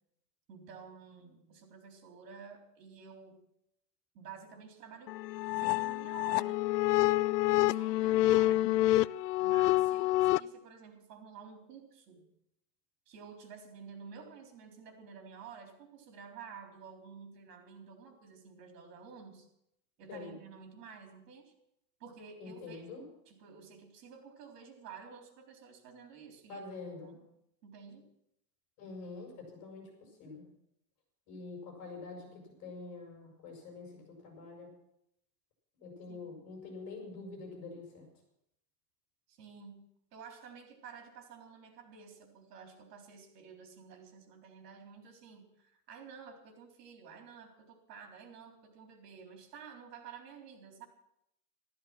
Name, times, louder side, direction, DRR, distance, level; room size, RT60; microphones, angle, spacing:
voice 1, 0.5-3.4 4.1-5.1 5.5-6.7 7.3-8.7 9.4-12.3 13.1-19.5 20.0-21.5 22.0-22.8 23.3-26.7 27.0-27.2 27.6-28.1 36.1-36.4 39.3-50.9, right 6 dB, 80° right, 3 dB, 4.0 m, -51 dB
sound 1, 5.1-10.4, left 16 dB, 80° left, 0.6 m, -27 dB
voice 2, 22.4-23.0 26.5-27.1 28.8-30.5 31.3-34.7 35.7-38.1, left 3 dB, 40° left, 1 dB, 6.9 m, -46 dB
14.0 x 13.5 x 6.1 m, 0.78 s
supercardioid pair, 175°, 47 cm